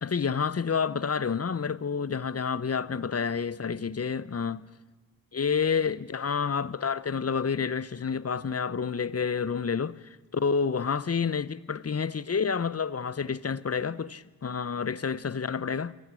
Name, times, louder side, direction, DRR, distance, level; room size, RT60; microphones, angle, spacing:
voice 1, 0.0-4.6 5.4-10.0 10.3-15.9, left 6 dB, 35° left, 0.8 m, -29 dB
23.5 x 15.0 x 9.0 m
cardioid pair, 55°, 44 cm